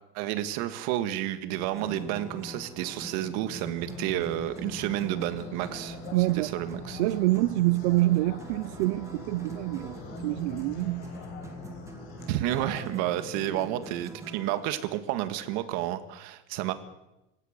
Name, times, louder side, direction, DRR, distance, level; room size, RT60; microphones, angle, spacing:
voice 1, 0.1-6.0 6.3-7.0 12.3-16.7, right 13 dB, 55° right, 1.8 m, -31 dB
sound 1, 1.5-14.6, right 1 dB, 10° right, 2.1 m, -43 dB
sound 2, 3.8-12.9, left 6 dB, 80° left, 6.9 m, -45 dB
voice 2, 6.1-6.5 7.0-11.1, right 20 dB, 85° right, 0.7 m, -26 dB
28.5 x 16.0 x 6.7 m
cardioid pair, 170°, 33 cm